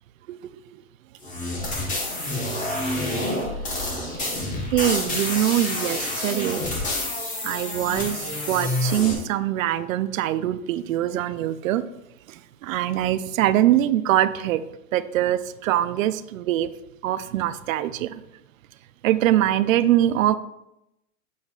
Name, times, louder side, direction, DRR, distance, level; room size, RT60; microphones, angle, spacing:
voice 1, 0.3-0.6 4.4-6.6 7.4-11.8 12.3-14.6 14.9-16.7 17.0-18.2 19.0-20.4, right 12 dB, 65° right, 13 dB, 0.6 m, -23 dB
sound 1, 1.2-9.1, left 1 dB, 15° left, 1.2 m, -28 dB
8.0 x 7.2 x 2.4 m, 0.88 s
hypercardioid pair, 145°, 44 cm